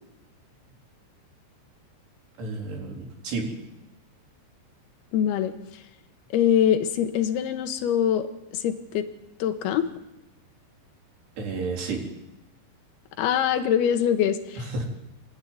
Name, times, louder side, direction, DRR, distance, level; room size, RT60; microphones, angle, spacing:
voice 1, 2.4-3.6 11.4-12.0 14.6-14.9, right 3 dB, 60° right, 1 dB, 5.7 m, -31 dB
voice 2, 5.1-5.8 6.3-8.3 8.5-9.1 9.4-9.9 13.2-14.9, left 9 dB, 65° left, 7 dB, 3.0 m, -24 dB
28.5 x 12.0 x 9.6 m, 0.98 s
omnidirectional pair, 5.5 m